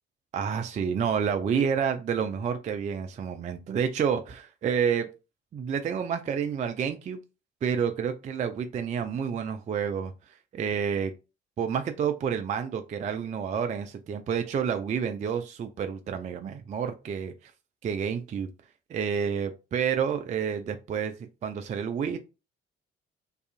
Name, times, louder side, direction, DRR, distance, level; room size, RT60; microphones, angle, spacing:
voice 1, 0.3-5.1 5.5-7.2 7.6-10.1 10.5-11.1 11.6-17.5 17.8-18.5 18.9-21.1 21.4-22.2, right 7 dB, 25° right, 7 dB, 0.3 m, -29 dB
2.7 x 2.4 x 2.4 m, 0.29 s
figure-of-eight pair, 40°, 30 cm